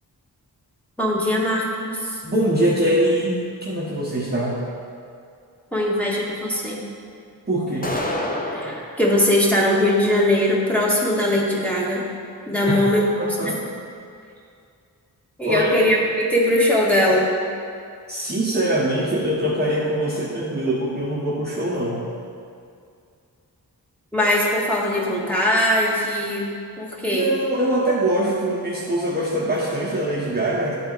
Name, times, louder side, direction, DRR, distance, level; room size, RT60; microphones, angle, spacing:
voice 1, 1.0-2.2 5.7-6.8 8.5-12.1 12.5-13.2 13.4-13.6 15.4-17.2 24.1-27.3, left 1 dB, 5° left, -5 dB, 1.8 m, -20 dB
voice 2, 2.2-4.6 7.5-7.9 12.6-12.8 13.2-13.6 15.4-15.7 18.1-22.1 27.1-30.7, right 1 dB, 25° right, -7 dB, 1.2 m, -23 dB
sound 1, 7.8-8.8, left 1 dB, 25° left, 0.9 m, -26 dB
10.5 x 4.2 x 4.0 m, 2.3 s
cardioid pair, 50°, 38 cm